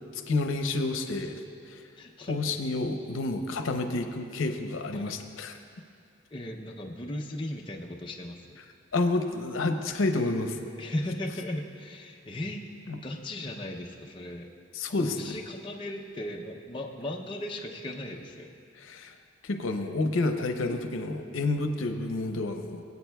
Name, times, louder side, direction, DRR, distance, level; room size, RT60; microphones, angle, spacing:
voice 1, 0.1-1.4 1.7-1.8 2.3-5.6 8.9-10.6 12.9-13.0 14.7-15.3 18.8-19.1 19.4-22.8, left 2 dB, 85° left, 6 dB, 0.7 m, -29 dB
voice 2, 2.0-2.4 4.9-5.1 6.3-8.6 10.8-12.6 13.0-14.5 15.0-18.5, left 1 dB, 25° left, 0 dB, 0.5 m, -37 dB
20.5 x 8.2 x 2.3 m, 2.3 s
head